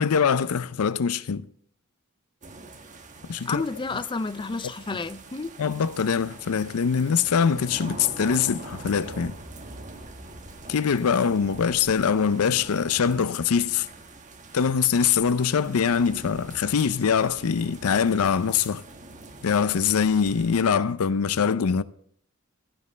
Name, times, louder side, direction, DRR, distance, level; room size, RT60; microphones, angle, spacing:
voice 1, 0.0-1.5 3.3-3.6 5.6-9.4 10.7-13.9 14.5-18.8 19.4-21.8, left 6 dB, 80° left, 0.5 m, -23 dB
sound 1, 2.4-20.6, right 2 dB, 35° right, 1.3 m, -44 dB
voice 2, 3.4-5.5, left 3 dB, 20° left, 0.4 m, -31 dB
15.5 x 5.3 x 6.5 m
head